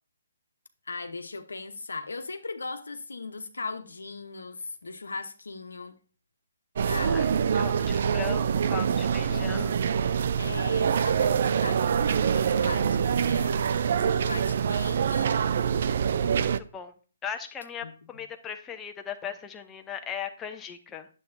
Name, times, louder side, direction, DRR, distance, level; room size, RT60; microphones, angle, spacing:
voice 1, 0.9-6.0 6.8-7.3 9.3-9.8 10.4-15.6 17.8-17.9, left 3 dB, 85° left, 0.9 m, -38 dB
sound 1, 6.8-16.6, right 7 dB, 55° right, 0.4 m, -25 dB
voice 2, 7.5-9.8 16.3-16.9 17.2-21.1, left 8 dB, 15° left, 0.7 m, -38 dB
9.4 x 7.5 x 2.6 m
hypercardioid pair, 145°, 0 cm